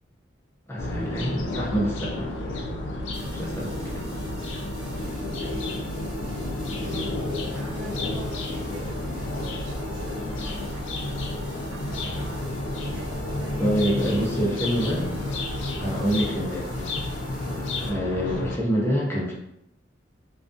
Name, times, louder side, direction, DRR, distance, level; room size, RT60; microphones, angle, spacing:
voice 1, 0.7-2.3 3.3-4.0 13.6-15.1 15.8-17.0 17.8-19.3, equal, 15° left, -4 dB, 0.5 m, -26 dB
sound 1, 0.8-18.6, left 2 dB, 80° left, 0.4 m, -31 dB
sound 2, 3.1-17.9, equal, 25° right, 0.7 m, -45 dB
voice 2, 3.1-3.5 3.9-4.6 4.9-5.1 5.4-5.9 6.7-13.1 13.4-15.1 18.2-18.4, right 1 dB, 80° right, -1 dB, 0.5 m, -45 dB
2.3 x 2.2 x 2.5 m, 0.81 s
head